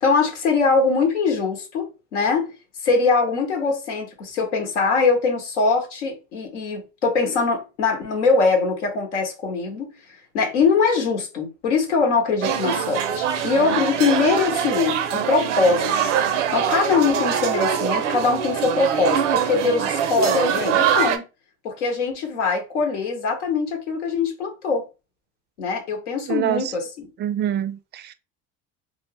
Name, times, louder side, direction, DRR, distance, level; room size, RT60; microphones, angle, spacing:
voice 1, 0.0-2.5 2.8-9.9 10.3-21.2 21.6-24.9 25.6-27.1, left 4 dB, 85° left, 1.0 m, -22 dB
sound 1, 12.4-21.2, right 8 dB, 85° right, 0.5 m, -23 dB
voice 2, 26.3-26.7 27.2-28.1, right 11 dB, 30° right, 0.4 m, -25 dB
2.4 x 2.1 x 3.3 m
hypercardioid pair, 75°, 35 cm